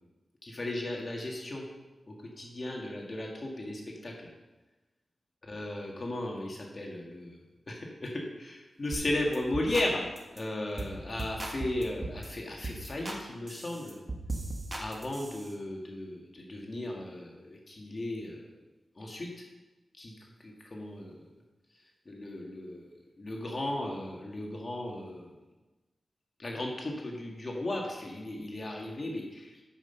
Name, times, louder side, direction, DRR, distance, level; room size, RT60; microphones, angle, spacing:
voice 1, 0.4-1.6 2.1-4.3 5.4-7.4 7.7-14.0 14.8-18.4 19.0-19.4 19.9-21.3 21.7-25.3 26.4-29.6, left 1 dB, 40° left, 0 dB, 1.8 m, -36 dB
sound 1, 8.9-9.1 9.3-9.9 10.2-10.4 10.8-10.9 11.2-12.3 12.6-13.2 13.5-15.5, right 2 dB, 25° right, 1.6 m, -38 dB
9.3 x 7.6 x 5.6 m, 1.1 s
wide cardioid pair, 90°, 0 cm